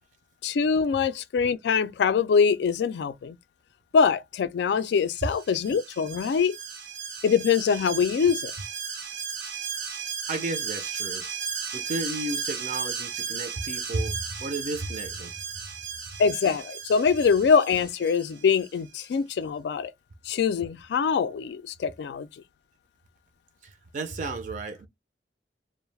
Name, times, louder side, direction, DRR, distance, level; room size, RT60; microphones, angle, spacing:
voice 1, 0.4-3.4 3.9-6.6 7.2-8.5 16.2-19.9 20.3-22.3, left 6 dB, 70° left, 0.3 m, -23 dB
Alarm, 5.2-18.7 19.0-19.1, right 6 dB, 85° right, 0.8 m, -35 dB
voice 2, 10.3-11.3 11.7-15.3 23.6-24.9, right 2 dB, 45° right, 0.4 m, -33 dB
2.3 x 2.0 x 3.1 m
head